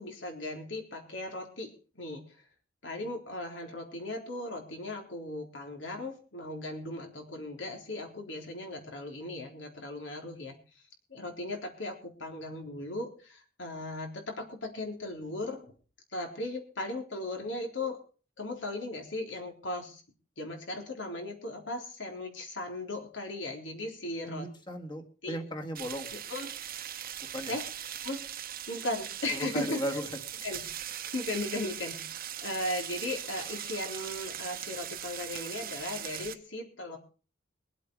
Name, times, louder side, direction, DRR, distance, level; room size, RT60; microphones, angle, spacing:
voice 1, 0.0-2.2 2.8-10.6 11.1-15.7 16.1-18.0 18.4-20.0 20.4-24.5 25.2-25.4 26.1-26.5 27.5-27.6 28.0-28.2 28.7-30.0 30.4-32.1 32.4-37.0, left 2 dB, 75° left, 2 dB, 3.7 m, -37 dB
voice 2, 24.2-26.1 27.3-27.5 29.3-30.0, equal, 25° left, 3 dB, 1.9 m, -36 dB
sound 1, 25.7-36.3, right 10 dB, 50° right, 1.0 m, -40 dB
22.5 x 8.3 x 4.7 m, 0.37 s
head